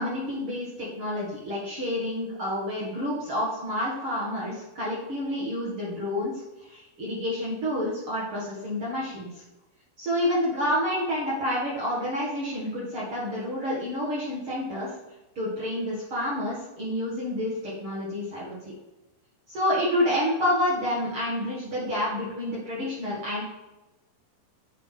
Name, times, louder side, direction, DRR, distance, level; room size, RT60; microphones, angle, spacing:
voice 1, 0.0-6.3 6.7-9.3 10.0-14.9 15.4-18.6 19.5-23.4, left 1 dB, 50° right, -7 dB, 1.7 m, -29 dB
8.4 x 4.1 x 3.7 m, 1.0 s
omnidirectional pair, 4.4 m